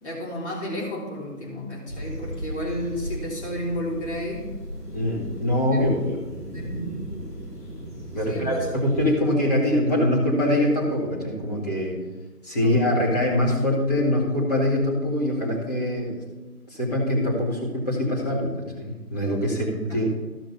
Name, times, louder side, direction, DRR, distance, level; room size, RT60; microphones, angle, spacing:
voice 1, 0.0-4.5 5.7-6.0 6.5-6.9 8.3-8.7 12.6-12.8, equal, 45° left, -4 dB, 3.5 m, -32 dB
sound 1, 1.9-9.2, equal, 90° left, 3.4 m, -36 dB
voice 2, 4.9-6.2 8.1-12.0 12.4-16.2 16.7-20.1, left 1 dB, 25° left, -6 dB, 2.2 m, -23 dB
14.0 x 5.9 x 4.2 m, 1.2 s
figure-of-eight pair, 165°, 46 cm